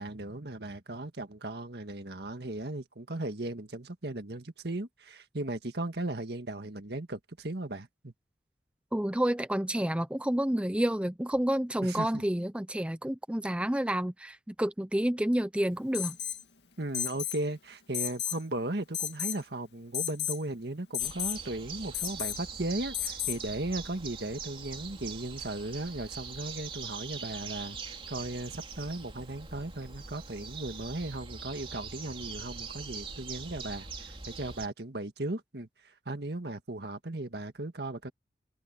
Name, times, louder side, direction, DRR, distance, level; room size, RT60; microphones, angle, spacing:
voice 1, 0.0-8.1 11.8-12.2 16.8-35.7 36.1-38.1, right 2 dB, 65° right, 1.8 m, -36 dB
voice 2, 8.9-16.2, right 1 dB, 5° right, 0.6 m, -29 dB
Alarm, 15.9-16.4 16.9-17.4 17.9-18.4 18.9-19.4 19.9-20.4 20.9-21.4 21.9-22.4 22.9-23.4, left 11 dB, 70° left, 2.3 m, -33 dB
sound 1, 21.0-34.7, right 5 dB, 30° right, 3.4 m, -43 dB
head